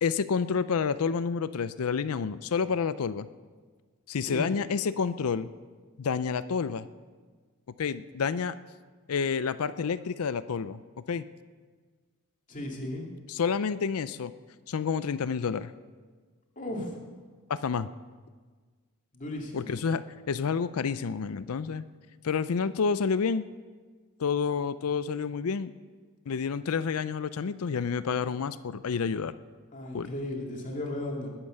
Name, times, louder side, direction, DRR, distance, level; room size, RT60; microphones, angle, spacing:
voice 1, 0.0-3.3 4.1-5.5 6.0-6.9 7.8-8.5 9.1-10.8 11.1-11.2 13.3-14.3 14.7-15.7 17.5-17.9 19.5-21.8 22.2-23.5 24.2-25.7 26.3-29.4 29.9-30.1, left 5 dB, 75° left, 14 dB, 0.5 m, -29 dB
voice 2, 12.5-13.1 16.6-17.0 19.1-19.7 29.7-31.3, left 1 dB, 35° left, -1 dB, 2.5 m, -35 dB
20.5 x 8.9 x 6.5 m, 1.5 s
head